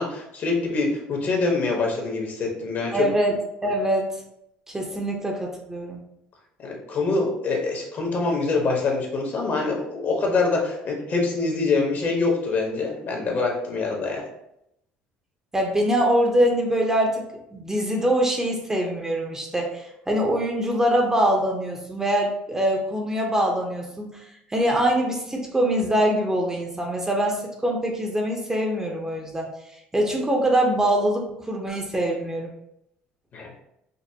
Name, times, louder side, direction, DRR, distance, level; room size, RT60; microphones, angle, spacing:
voice 1, 0.0-3.1 6.6-14.2 33.3-33.6, left 3 dB, 50° left, 0 dB, 1.1 m, -25 dB
voice 2, 2.9-4.1 4.7-6.0 15.5-17.2 17.5-24.2 24.5-29.5 29.9-32.5, right 1 dB, 15° right, 0 dB, 0.7 m, -23 dB
5.2 x 2.1 x 2.8 m, 0.80 s
supercardioid pair, 90°, 4 cm